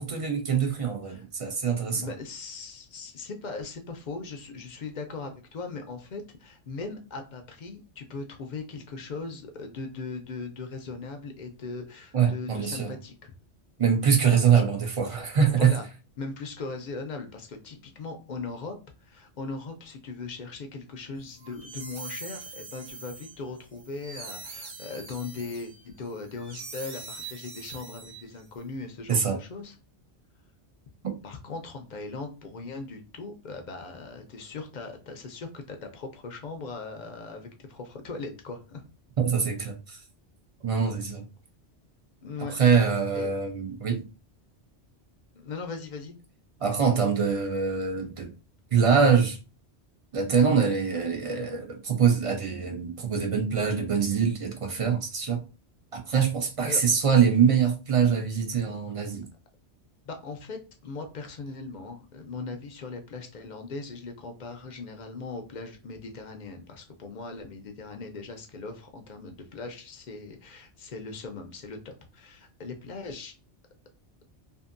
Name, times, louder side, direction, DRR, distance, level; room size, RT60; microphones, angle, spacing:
voice 1, 0.0-2.1 12.1-12.9 13.8-15.7 29.1-29.4 31.0-31.2 39.2-40.0 40.6-41.3 42.5-44.0 46.6-48.3 48.7-49.4 50.1-55.4 55.9-59.3, right 6 dB, 50° right, 0.4 m, -24 dB
voice 2, 1.8-13.3 15.5-15.9 16.2-29.7 31.2-38.8 42.2-42.6 43.1-43.3 45.3-46.2 56.6-56.8 60.0-73.3, left 4 dB, 55° left, 0.5 m, -39 dB
sound 1, 21.3-28.6, right 4 dB, 75° right, 1.0 m, -43 dB
2.6 x 2.6 x 2.4 m
omnidirectional pair, 1.2 m